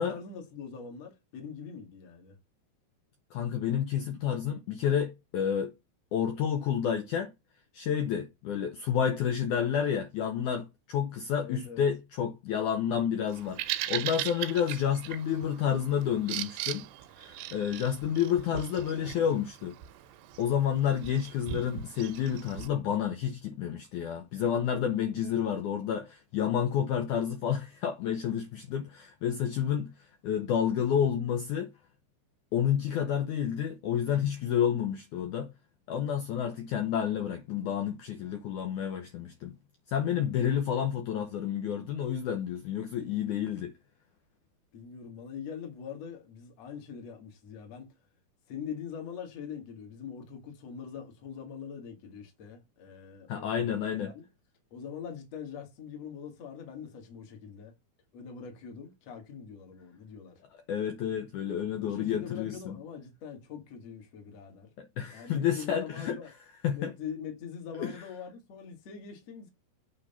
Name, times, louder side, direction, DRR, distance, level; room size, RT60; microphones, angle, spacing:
voice 1, 0.0-2.4 11.4-11.8 44.7-48.0 48.5-54.2 54.7-57.7 58.1-60.4 61.8-64.7 65.1-66.3 66.7-69.5, left 7 dB, 45° left, 2.7 m, -43 dB
voice 2, 3.3-5.7 6.1-7.3 7.7-16.9 17.2-19.8 20.4-29.9 30.2-31.7 32.5-35.5 35.9-39.6 39.9-43.7 53.3-54.1 60.7-62.8 64.8-66.2 66.6-66.9 67.8-67.9, left 8 dB, 85° left, 1.8 m, -30 dB
Bird vocalization bird call bird song, 13.3-22.7, right 13 dB, 85° right, 2.9 m, -39 dB
9.0 x 3.8 x 5.7 m
omnidirectional pair, 4.8 m